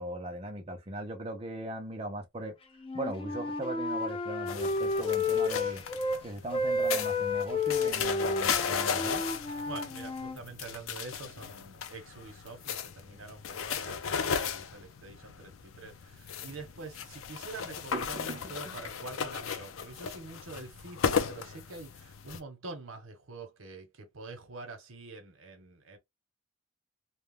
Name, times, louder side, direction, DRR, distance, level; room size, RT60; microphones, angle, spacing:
voice 1, 0.0-2.5 2.9-5.8 6.2-9.2 17.9-18.8, right 1 dB, 30° right, 0.5 m, -39 dB
Wind instrument woodwind instrument, 2.8-6.2 6.5-10.4, left 2 dB, 25° left, 0.5 m, -31 dB
sound 1, 4.5-22.4, left 7 dB, 85° left, 0.4 m, -36 dB
voice 2, 9.6-26.0, right 3 dB, 85° right, 0.8 m, -46 dB
2.3 x 2.1 x 3.2 m
head